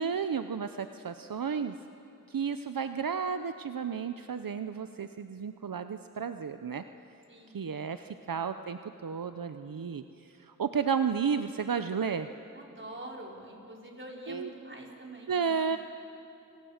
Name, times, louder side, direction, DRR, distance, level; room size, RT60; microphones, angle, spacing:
voice 1, 0.0-1.7 2.3-6.8 7.5-10.0 10.4-12.3 14.3-14.5 15.3-15.8, right 6 dB, 80° right, 9 dB, 0.7 m, -32 dB
voice 2, 7.3-7.7 8.0-8.3 12.5-15.8, right 1 dB, 35° right, -2 dB, 4.7 m, -46 dB
29.5 x 21.5 x 6.5 m, 2.8 s
wide cardioid pair, 45°, 34 cm